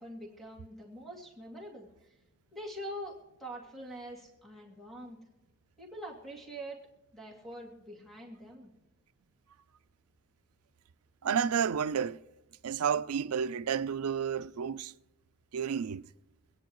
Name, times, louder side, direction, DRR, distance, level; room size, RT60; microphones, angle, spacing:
voice 1, 0.0-1.9 2.5-5.2 5.8-6.8 7.1-8.7, equal, ahead, 2.1 m, -44 dB
voice 2, 11.2-12.2 12.6-14.9 15.5-16.0, right 7 dB, 85° right, 0.5 m, -31 dB
24.5 x 9.5 x 3.1 m
head